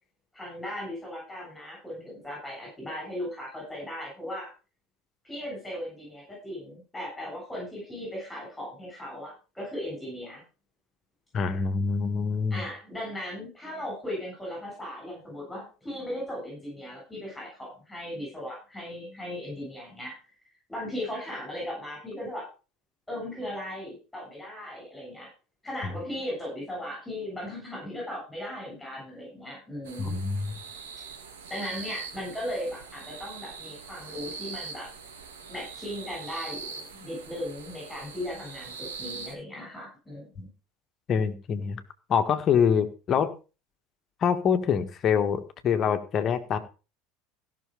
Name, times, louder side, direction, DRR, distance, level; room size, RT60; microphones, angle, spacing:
voice 1, 0.3-4.5 5.2-10.4 12.5-20.1 20.7-22.4 23.1-25.3 25.6-30.2 31.5-34.9 35.5-40.5, left 1 dB, 10° left, -2 dB, 7.5 m, -37 dB
voice 2, 11.3-12.6 30.0-30.6 41.1-41.8 42.1-43.3 44.2-46.6, left 7 dB, 40° left, 9 dB, 1.5 m, -25 dB
sound 1, 29.8-39.4, right 5 dB, 70° right, 2.2 m, -42 dB
16.0 x 6.4 x 5.1 m, 0.33 s
figure-of-eight pair, 70°, 0 cm